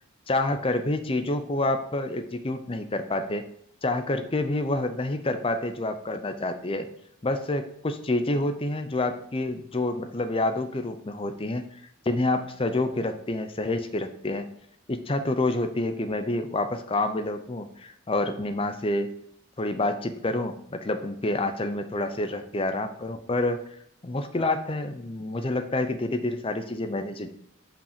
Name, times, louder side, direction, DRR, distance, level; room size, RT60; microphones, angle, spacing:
voice 1, 0.3-3.5 3.8-6.9 7.2-11.6 12.1-14.5 14.9-19.1 19.6-23.6 24.0-27.3, left 2 dB, 25° left, 8 dB, 0.5 m, -28 dB
5.5 x 5.1 x 5.1 m, 0.68 s
head